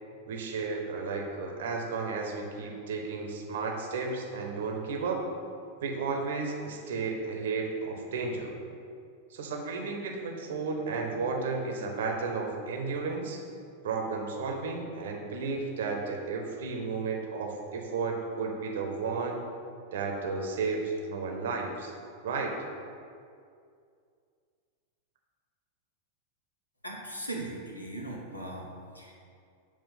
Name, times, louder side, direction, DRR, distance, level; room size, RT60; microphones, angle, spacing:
voice 1, 0.3-5.2 5.8-8.6 9.3-13.4 13.8-19.4 19.9-21.9 22.2-22.6, right 4 dB, 60° right, 1 dB, 0.8 m, -33 dB
voice 2, 26.8-28.7 28.9-29.1, right 1 dB, 85° left, -1 dB, 0.8 m, -38 dB
7.1 x 2.4 x 5.6 m, 2.3 s
figure-of-eight pair, 90°, 0 cm